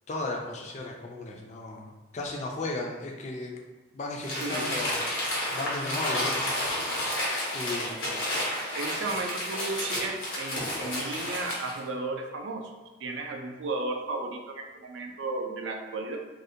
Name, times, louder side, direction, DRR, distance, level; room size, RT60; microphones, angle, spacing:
voice 1, 0.1-3.6 3.9-4.9 5.5-6.5 7.5-8.1, left 2 dB, 35° left, 0 dB, 0.3 m, -35 dB
Crumpling crinkling, 4.2-11.8, left 1 dB, 85° left, 1.0 m, -31 dB
voice 2, 4.3-4.7 8.7-12.7 13.0-16.2, right 3 dB, 75° right, 3 dB, 0.3 m, -34 dB
2.4 x 2.1 x 2.6 m, 1.2 s
head